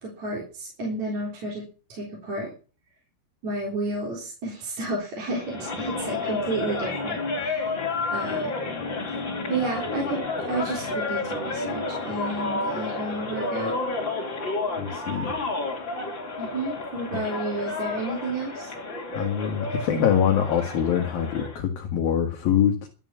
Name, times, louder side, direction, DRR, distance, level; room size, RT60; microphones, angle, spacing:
voice 1, 0.0-1.6 1.9-2.5 3.4-7.7 8.1-8.5 9.5-13.8 16.4-18.7, right 2 dB, 40° right, -2 dB, 4.6 m, -31 dB
sound 1, 5.4-21.6, left 3 dB, 25° left, 3.5 m, -31 dB
voice 2, 14.8-15.3 19.1-22.9, left 8 dB, 60° left, 2 dB, 2.9 m, -24 dB
12.5 x 9.4 x 7.3 m, 0.36 s
omnidirectional pair, 5.5 m